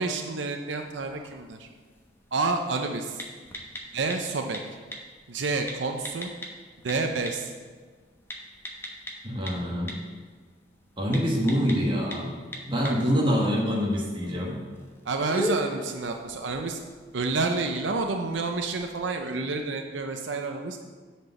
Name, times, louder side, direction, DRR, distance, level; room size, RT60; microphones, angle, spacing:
voice 1, 0.0-1.7 2.3-3.2 3.9-4.6 5.3-6.3 6.8-7.5 12.8-13.1 15.1-16.8 17.1-20.8, right 3 dB, 80° right, 4 dB, 0.6 m, -29 dB
sound 1, 0.8-19.1, left 1 dB, 15° left, 1.0 m, -41 dB
voice 2, 9.2-10.0 11.0-12.4 12.7-14.6, equal, 25° right, -2 dB, 1.6 m, -25 dB
8.0 x 4.5 x 7.0 m, 1.5 s
head